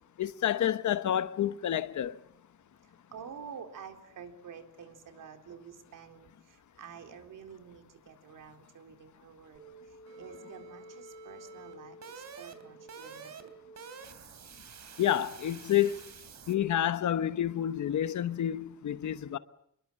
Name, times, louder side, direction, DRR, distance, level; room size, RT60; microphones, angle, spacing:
voice 1, 0.2-2.2 15.0-16.0 16.5-19.4, left 11 dB, 65° left, 1.0 m, -29 dB
voice 2, 2.8-9.6 9.9-13.5 13.8-13.9, right 7 dB, 75° right, 4.1 m, -49 dB
sound 1, 9.6-16.6, right 4 dB, 60° right, 3.1 m, -49 dB
27.5 x 22.5 x 7.6 m
wide cardioid pair, 160°, 32 cm